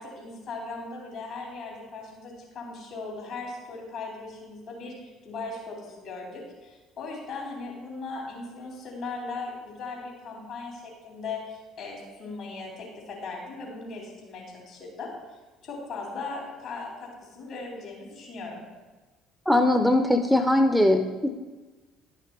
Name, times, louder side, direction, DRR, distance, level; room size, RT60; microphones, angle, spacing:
voice 1, 0.0-15.4 15.6-18.6, left 3 dB, 55° left, -2 dB, 3.2 m, -38 dB
voice 2, 19.5-21.3, left 1 dB, ahead, 7 dB, 0.6 m, -21 dB
11.0 x 5.8 x 4.6 m, 1.2 s
figure-of-eight pair, 55°, 0 cm